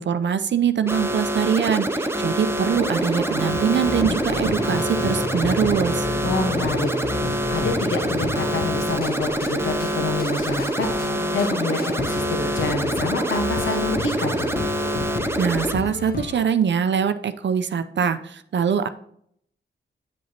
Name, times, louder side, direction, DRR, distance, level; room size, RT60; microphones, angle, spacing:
voice 1, 0.0-6.1 15.4-18.9, right 7 dB, 60° right, 10 dB, 0.5 m, -23 dB
sound 1, 0.9-15.7, right 1 dB, 10° right, 0.8 m, -26 dB
sound 2, 2.7-9.7, equal, 20° left, 1.0 m, -33 dB
sound 3, 3.5-16.4, left 4 dB, 45° left, 0.6 m, -33 dB
voice 2, 6.2-14.5, left 3 dB, 65° left, 4 dB, 1.3 m, -27 dB
7.8 x 7.4 x 2.9 m, 0.67 s
supercardioid pair, 45°, 21 cm